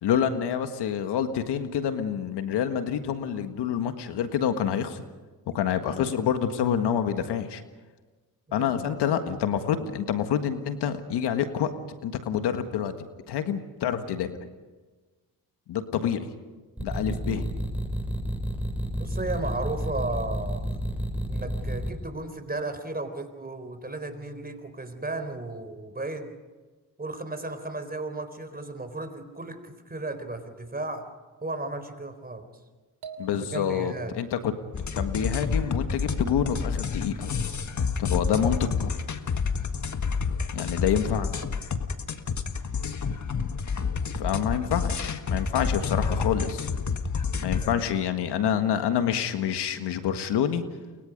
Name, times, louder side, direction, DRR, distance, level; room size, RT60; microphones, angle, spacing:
voice 1, 0.0-5.0 5.5-7.6 8.5-11.7 12.0-12.9 13.3-14.4 15.7-16.3 16.8-17.5 33.2-34.5 34.9-37.3 38.0-38.9 40.5-41.3 44.1-46.7 47.4-50.6, left 8 dB, 80° left, 8 dB, 1.7 m, -27 dB
voice 2, 8.5-9.0 19.0-20.8 21.3-26.3 27.0-31.1 31.4-32.5 33.4-34.2, right 2 dB, 20° right, 8 dB, 4.2 m, -34 dB
sound 1, 16.8-21.9, equal, 5° right, 7.0 m, -30 dB
sound 2, 33.0-34.2, right 5 dB, 75° right, 3.1 m, -45 dB
sound 3, 34.7-47.8, left 5 dB, 45° left, 1.8 m, -29 dB
29.0 x 23.5 x 5.3 m, 1.3 s
supercardioid pair, 60°, 40 cm